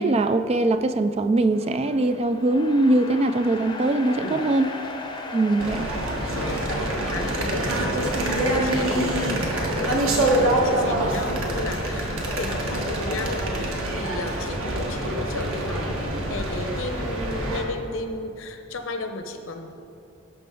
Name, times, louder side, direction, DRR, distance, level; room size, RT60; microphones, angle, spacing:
voice 1, 0.0-4.7 5.3-5.9, right 2 dB, 30° right, 10 dB, 0.3 m, -21 dB
sound 1, 1.5-13.1, left 2 dB, 20° left, 0.7 m, -40 dB
sound 2, 5.6-17.6, right 1 dB, 65° right, 1.5 m, -25 dB
voice 2, 6.3-19.7, left 2 dB, 60° left, 6 dB, 0.8 m, -34 dB
17.5 x 5.9 x 3.8 m, 2.6 s
head